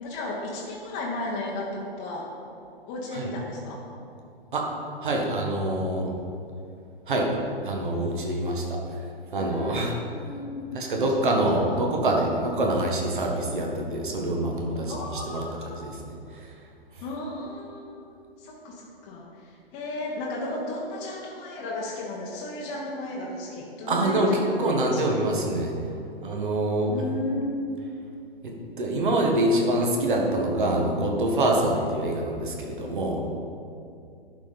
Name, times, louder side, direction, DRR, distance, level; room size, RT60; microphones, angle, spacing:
voice 1, 0.0-2.3 2.9-3.8 9.4-10.8 11.2-11.8 14.9-15.8 17.0-18.1 18.4-25.0 26.9-27.5 31.7-31.9, left 2 dB, 20° left, -4 dB, 1.0 m, -34 dB
voice 2, 5.0-6.1 7.1-7.4 7.6-9.0 9.3-9.9 10.7-16.6 16.9-17.0 23.9-25.8 26.2-26.9 28.4-33.2, right 1 dB, 55° right, 0 dB, 1.6 m, -25 dB
11.5 x 4.5 x 5.3 m, 2.5 s
figure-of-eight pair, 120°, 30 cm